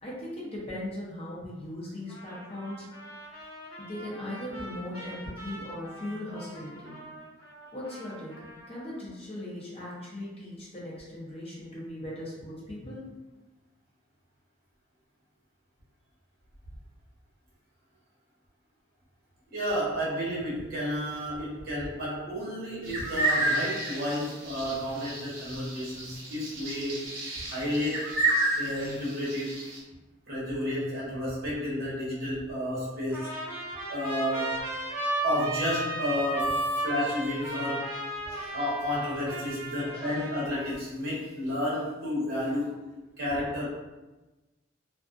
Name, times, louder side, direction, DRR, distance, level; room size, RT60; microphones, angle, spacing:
voice 1, 0.0-2.8 3.8-7.0 7.7-8.3 8.7-13.1 38.3-38.6 39.8-40.2, left 1 dB, 30° left, -6 dB, 0.6 m, -39 dB
Trumpet, 2.1-9.1, right 1 dB, 55° left, 1.4 m, -46 dB
voice 2, 19.5-27.0 27.4-28.1 28.6-29.6 30.3-33.3 33.9-34.6 35.2-36.6 36.8-37.9 38.5-42.7 43.2-43.6, equal, 50° right, -7 dB, 0.9 m, -31 dB
sound 1, 22.8-29.8, right 2 dB, 75° right, 0.7 m, -30 dB
Trumpet 2, 33.1-40.8, right 1 dB, 10° right, 0.5 m, -33 dB
2.4 x 2.4 x 2.5 m, 1.1 s
head